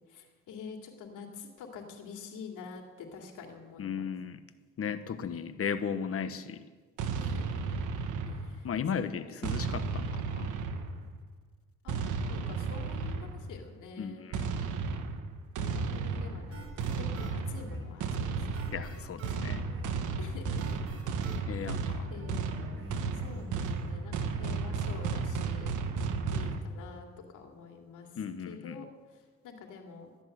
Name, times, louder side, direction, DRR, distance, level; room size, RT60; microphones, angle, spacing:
voice 1, 0.1-4.1 7.1-7.8 8.3-8.7 9.0-9.6 11.8-14.3 15.6-18.8 20.2-21.0 21.5-22.6 23.1-25.8 26.3-30.1, left 5 dB, 85° left, 2 dB, 2.6 m, -47 dB
voice 2, 3.8-4.4 4.8-6.6 8.6-10.6 14.0-14.6 18.7-19.7 21.5-22.1 28.2-28.8, left 7 dB, 50° left, 12 dB, 1.1 m, -36 dB
sound 1, 7.0-8.7 9.4-11.2 11.9-13.5 14.3-26.6, right 5 dB, 85° right, 1.4 m, -34 dB
sound 2, 15.6-23.9, equal, 45° right, 4.4 m, -47 dB
14.0 x 10.5 x 7.9 m, 1.5 s
cardioid pair, 90°, 30 cm